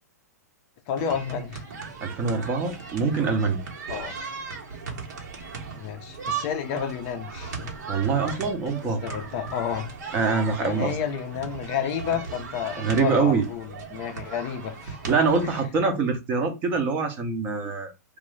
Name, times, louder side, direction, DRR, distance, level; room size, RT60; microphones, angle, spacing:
voice 1, 0.9-1.6 3.9-4.1 5.8-7.7 8.6-9.9 10.6-15.0, left 7 dB, 30° left, 0.4 m, -31 dB
sound 1, 1.0-15.7, right 5 dB, 80° right, 1.2 m, -37 dB
voice 2, 2.0-3.6 7.9-9.0 10.1-11.0 12.8-13.4 15.1-17.9, right 4 dB, 20° right, 0.6 m, -24 dB
2.6 x 2.4 x 3.1 m
hypercardioid pair, 160°, 9 cm